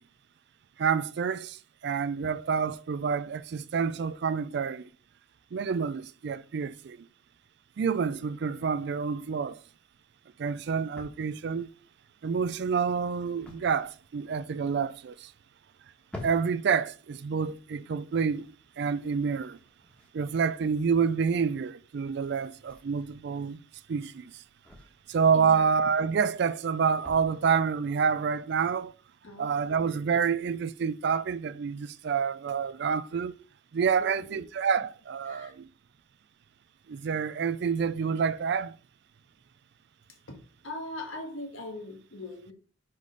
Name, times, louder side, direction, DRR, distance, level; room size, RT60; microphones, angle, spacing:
voice 1, 0.8-4.9 5.5-7.1 7.8-9.6 10.4-11.7 12.2-15.3 16.2-19.6 20.1-23.6 23.9-24.3 25.1-28.9 29.4-33.4 33.7-35.7 36.9-38.7, right 6 dB, 60° right, 0.4 m, -28 dB
sound 1, 9.1-28.9, left 1 dB, 5° left, 1.3 m, -53 dB
voice 2, 29.2-29.6 34.0-34.4 35.3-35.5 40.3-40.4 40.6-42.5, left 2 dB, 90° left, 1.6 m, -40 dB
5.0 x 4.1 x 5.2 m
head